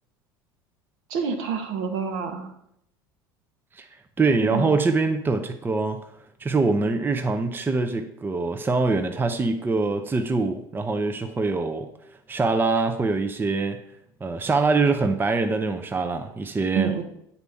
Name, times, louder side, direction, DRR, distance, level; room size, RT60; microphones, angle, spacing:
voice 1, 1.1-2.5 4.4-4.7 16.8-17.0, right 6 dB, 65° right, 5 dB, 1.0 m, -27 dB
voice 2, 4.2-6.0 6.4-11.9 12.3-13.8 14.2-16.9, right 3 dB, 15° right, 7 dB, 0.6 m, -24 dB
8.1 x 4.2 x 3.4 m, 0.75 s
hypercardioid pair, 75°, 13 cm